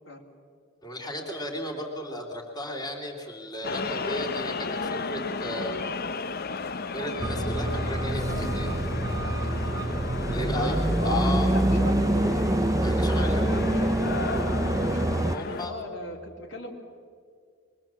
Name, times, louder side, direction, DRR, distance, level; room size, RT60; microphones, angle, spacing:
voice 1, 0.8-5.8 6.9-8.7 10.3-10.8 11.0-11.6 12.8-13.7 15.2-15.8, left 1 dB, 20° left, 0 dB, 3.1 m, -35 dB
sound 1, 3.6-15.7, left 4 dB, 50° left, 0.8 m, -34 dB
sound 2, 7.2-15.4, right 1 dB, 15° right, 0.5 m, -26 dB
voice 2, 10.3-12.4 13.1-14.5 14.8-16.7, left 1 dB, 65° left, 0 dB, 3.3 m, -36 dB
23.5 x 23.0 x 7.6 m, 2.1 s
head